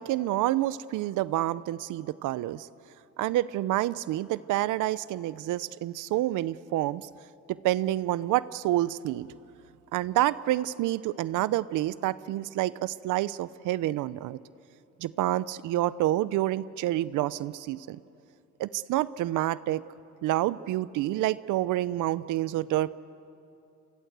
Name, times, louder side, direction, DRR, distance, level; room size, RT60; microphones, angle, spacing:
voice 1, 0.0-2.7 3.2-7.1 7.5-9.3 9.9-14.4 15.0-18.0 18.6-19.8 20.2-22.9, right 15 dB, 90° right, 18 dB, 0.6 m, -28 dB
27.5 x 23.0 x 8.1 m, 2.6 s
cardioid pair, 90°, 30 cm